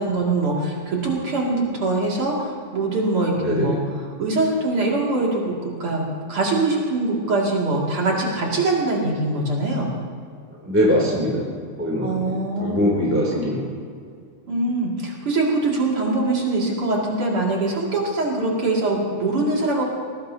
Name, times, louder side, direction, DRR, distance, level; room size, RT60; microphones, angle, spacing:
voice 1, 0.0-3.8 4.2-9.9 12.0-12.8 14.5-19.8, right 2 dB, 40° right, -3 dB, 2.4 m, -23 dB
voice 2, 3.4-3.8 10.6-11.4 11.8-13.7, equal, 5° right, -3 dB, 1.9 m, -22 dB
21.5 x 19.5 x 2.8 m, 2.2 s
omnidirectional pair, 5.4 m